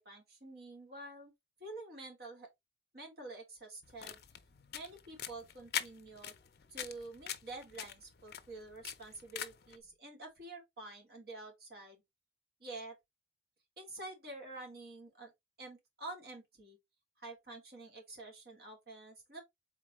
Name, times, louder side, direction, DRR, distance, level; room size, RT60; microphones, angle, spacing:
voice 1, 0.0-1.3 1.6-2.5 2.9-4.2 4.7-6.3 6.7-12.0 12.6-13.0 13.8-15.3 15.6-16.8 17.2-19.4, right 2 dB, 60° right, 2.3 m, -48 dB
sound 1, 3.8-9.8, left 10 dB, 60° left, 0.6 m, -44 dB
4.1 x 3.9 x 3.0 m
head